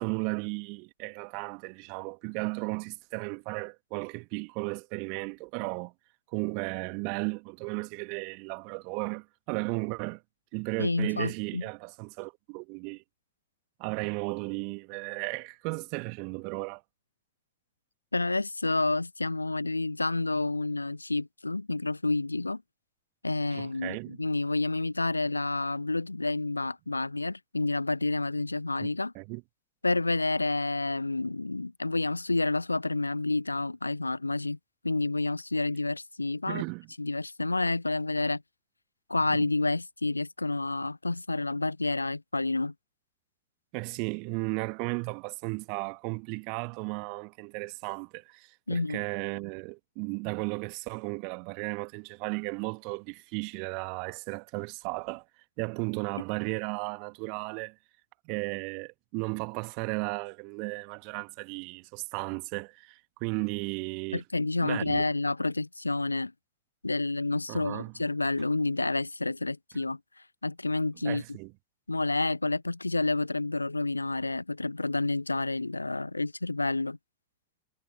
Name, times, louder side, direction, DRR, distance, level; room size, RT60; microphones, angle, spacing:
voice 1, 0.0-5.9 6.3-10.2 10.5-13.0 13.8-16.8 23.5-24.2 28.8-28.9 29.2-29.4 36.5-36.9 39.3-39.5 43.7-55.2 55.6-57.8 58.3-64.2 64.6-65.0 67.5-67.9 71.0-71.5, right 36 dB, 45° right, 1.8 m, -35 dB
voice 2, 10.8-11.6 18.1-22.6 23.2-29.1 29.8-34.6 34.8-36.6 37.0-38.4 39.1-42.7 48.7-49.0 64.1-66.3 66.8-70.0 70.4-71.2 71.9-77.0, left 2 dB, 80° left, 0.8 m, -29 dB
figure-of-eight pair, 90°, 0 cm